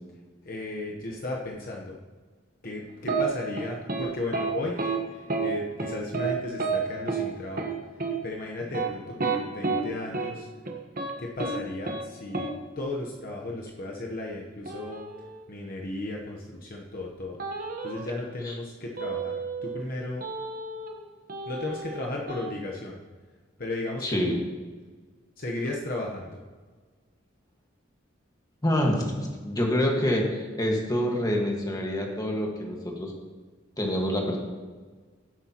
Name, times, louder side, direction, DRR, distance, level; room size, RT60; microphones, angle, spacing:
voice 1, 0.4-2.0 2.6-7.7 8.2-10.5 11.2-12.5 12.8-15.0 15.5-17.4 17.8-20.2 21.5-23.0 23.6-24.4 25.4-26.4, left 2 dB, 45° left, -1 dB, 1.0 m, -35 dB
sound 1, 3.1-3.2 3.6-4.1 4.3-4.5 4.8-5.0 5.3-5.5 5.8-6.3 6.6-6.8 7.1-7.2 7.6-7.7 8.0-8.1 8.6-9.8 10.1-10.3 10.7-11.1 11.4-11.6 11.8-12.0 12.3-12.5 14.7-15.4 17.4-18.1 19.0-19.8 20.2-21.0 21.3-22.5, right 4 dB, 45° right, 1.2 m, -31 dB
voice 2, 24.0-24.4 28.6-33.1 33.8-34.4, equal, 20° left, 0 dB, 1.6 m, -26 dB
16.0 x 8.0 x 3.0 m, 1.4 s
head